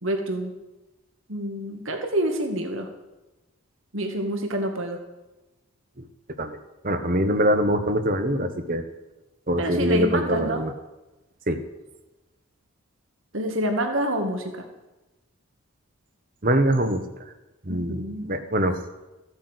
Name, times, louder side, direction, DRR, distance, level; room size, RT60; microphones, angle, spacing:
voice 1, 0.0-0.5 1.3-2.9 3.9-5.0 9.6-10.6 13.3-14.7 17.7-18.3, right 1 dB, 65° right, 4 dB, 2.0 m, -27 dB
voice 2, 6.8-8.8 9.5-10.7 11.5-11.6 16.4-17.0 17.6-18.8, right 1 dB, 40° right, 8 dB, 1.2 m, -23 dB
15.0 x 8.4 x 8.1 m, 1.1 s
head